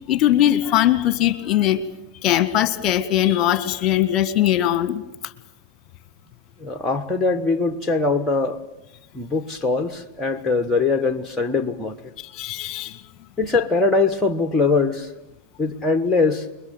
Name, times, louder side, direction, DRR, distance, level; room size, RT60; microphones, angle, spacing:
voice 1, 0.1-1.8 2.2-5.0 12.2-13.0, left 12 dB, 35° left, 1.8 m, -20 dB
voice 2, 6.6-8.6 9.1-12.0 13.4-15.1 15.6-16.5, left 3 dB, 10° left, 1.4 m, -21 dB
29.0 x 22.0 x 9.2 m
figure-of-eight pair, 90°, 0 cm